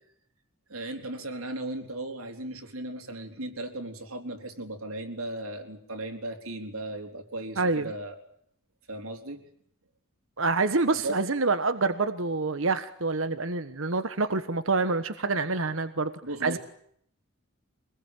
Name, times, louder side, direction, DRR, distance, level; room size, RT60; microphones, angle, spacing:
voice 1, 0.7-8.2 8.9-9.4 10.9-11.2 16.2-16.6, right 1 dB, 85° right, 4 dB, 4.2 m, -36 dB
voice 2, 7.6-7.9 10.4-16.1 16.4-16.6, right 3 dB, 65° right, 11 dB, 1.4 m, -27 dB
25.5 x 20.0 x 9.1 m, 0.68 s
head